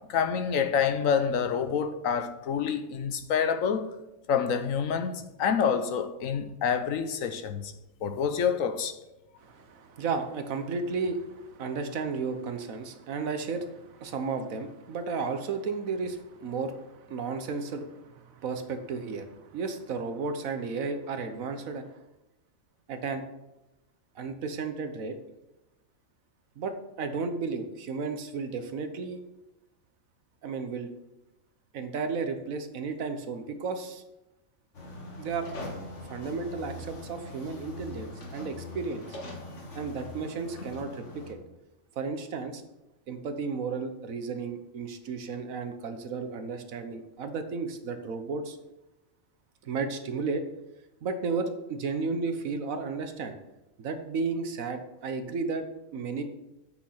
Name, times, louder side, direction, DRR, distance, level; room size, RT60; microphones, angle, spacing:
voice 1, 0.0-3.9 4.3-7.7 8.0-8.9, left 7 dB, 80° left, 1.2 m, -27 dB
voice 2, 9.4-22.0 22.9-23.2 24.2-25.2 26.6-29.2 30.4-30.9 31.7-34.0 35.2-35.5 36.1-39.1 39.7-41.4 42.0-42.6 43.1-48.6 49.6-50.4 51.0-53.4 53.8-55.6 55.9-56.2, right 4 dB, 85° right, 1.4 m, -33 dB
sound 1, 34.7-41.3, left 2 dB, 60° left, 1.9 m, -42 dB
8.5 x 6.3 x 5.7 m
omnidirectional pair, 1.4 m